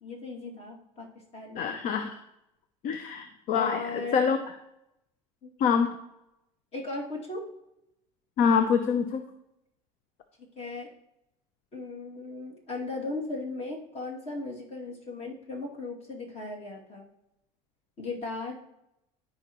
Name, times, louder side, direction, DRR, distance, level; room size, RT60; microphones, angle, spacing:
voice 1, 0.0-1.1 1.3-1.7 3.5-4.3 5.4-5.5 6.7-7.4 10.6-10.9 11.7-17.1 18.0-18.6, left 3 dB, 40° left, 0 dB, 2.5 m, -37 dB
voice 2, 1.6-2.2 2.8-4.5 5.6-5.9 8.4-9.2, left 6 dB, 55° left, 8 dB, 0.7 m, -26 dB
14.0 x 5.0 x 3.0 m, 0.84 s
supercardioid pair, 100°, 16 cm